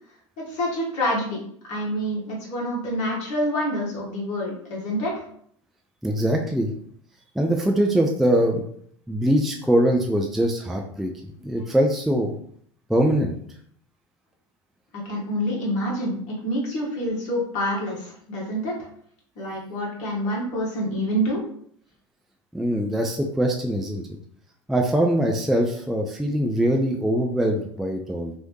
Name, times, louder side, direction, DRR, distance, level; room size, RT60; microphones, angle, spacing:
voice 1, 0.4-5.2 14.9-18.8 19.4-21.4, equal, 50° left, -4 dB, 1.1 m, -27 dB
voice 2, 6.0-6.7 7.4-8.6 9.1-11.1 11.4-12.4 12.9-13.3 22.5-24.0 24.7-28.3, right 1 dB, ahead, 2 dB, 0.3 m, -22 dB
3.1 x 2.6 x 3.1 m, 0.64 s
figure-of-eight pair, 75°, 16 cm